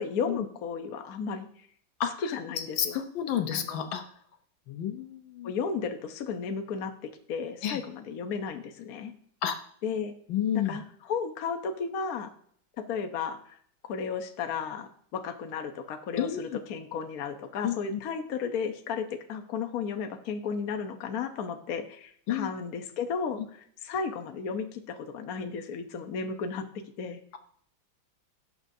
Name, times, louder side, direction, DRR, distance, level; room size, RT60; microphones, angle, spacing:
voice 1, 0.0-1.5 2.3-3.0 3.5-3.9 5.4-9.1 9.8-10.1 10.5-10.8 11.1-12.3 12.9-13.6 13.8-23.4 23.8-26.6 27.0-27.2, left 6 dB, 55° left, 6 dB, 1.2 m, -34 dB
voice 2, 2.0-2.4 2.8-4.0 4.7-5.5 7.6-7.8 9.4-9.6 10.3-10.8 16.2-16.6 17.6-18.0 22.3-22.5, left 9 dB, 75° left, 7 dB, 1.7 m, -30 dB
18.0 x 6.8 x 2.7 m, 0.62 s
omnidirectional pair, 2.2 m